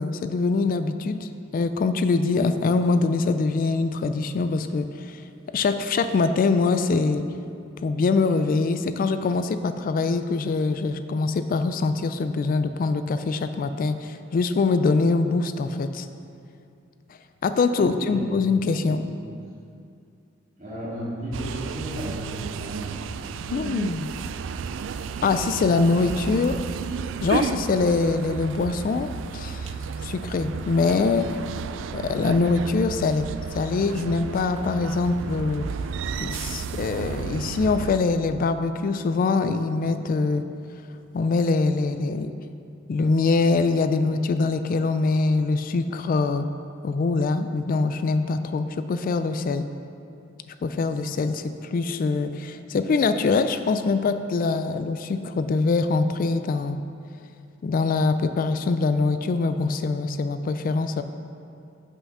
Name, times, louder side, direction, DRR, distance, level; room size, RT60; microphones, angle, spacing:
voice 1, 0.0-5.2 5.5-7.2 7.8-16.1 17.4-19.0 23.5-24.1 25.2-26.6 27.2-31.3 31.9-35.7 36.2-40.4 41.1-42.3 42.9-46.5 46.8-49.7 50.5-56.8 57.6-61.0, left 3 dB, 45° left, 10 dB, 0.3 m, -23 dB
voice 2, 17.7-18.2 18.8-18.9 20.6-22.2 22.5-23.0, right 1 dB, 35° right, -12 dB, 2.3 m, -33 dB
sound 1, 21.3-38.0, right 6 dB, 70° right, 0.3 m, -33 dB
8.3 x 5.7 x 5.5 m, 2.5 s
head